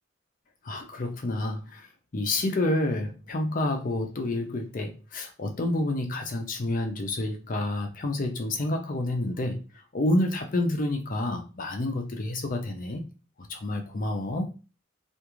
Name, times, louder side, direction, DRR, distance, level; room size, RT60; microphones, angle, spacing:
voice 1, 0.6-1.9 2.1-13.0 13.5-14.5, left 1 dB, 45° left, 4 dB, 0.5 m, -29 dB
2.5 x 2.4 x 3.0 m, 0.33 s
head